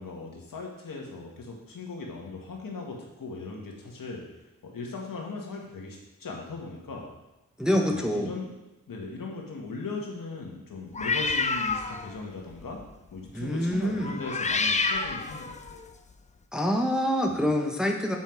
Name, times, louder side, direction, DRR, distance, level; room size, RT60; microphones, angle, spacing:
voice 1, 0.0-4.2 4.6-7.1 7.9-8.5 8.9-12.8 13.1-15.8 17.3-17.4, left 3 dB, 80° left, 0 dB, 1.6 m, -38 dB
voice 2, 7.6-8.3 13.3-14.1 16.5-18.2, equal, ahead, 1 dB, 0.7 m, -26 dB
sound 1, 10.9-12.2 12.5-12.8 14.0-15.8, left 4 dB, 20° left, 0.4 m, -28 dB
7.0 x 5.9 x 4.5 m, 1.0 s
wide cardioid pair, 150°, 33 cm